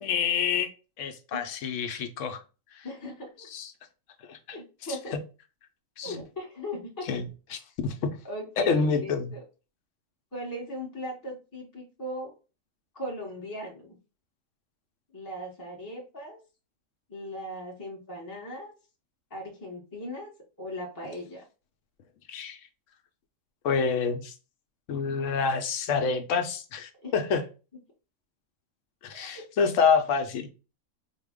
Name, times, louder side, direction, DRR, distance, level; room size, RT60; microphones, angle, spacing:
voice 1, 0.0-0.7 1.0-2.4 2.7-2.8 3.5-3.7 4.3-4.4 6.0-6.2 7.1-7.2 7.5-7.9 8.6-9.3 22.3-22.6 23.6-24.3 24.9-27.4 29.0-30.5, left 5 dB, 75° left, 7 dB, 0.9 m, -27 dB
voice 2, 2.8-3.5 4.5-5.1 6.0-7.1 8.2-9.4 10.3-12.3 12.9-13.9 15.1-16.4 17.1-18.7 19.3-20.3 20.6-21.4 27.0-27.1 29.1-29.4, left 1 dB, 20° left, -2 dB, 0.8 m, -38 dB
4.1 x 2.1 x 3.5 m, 0.32 s
omnidirectional pair, 1.3 m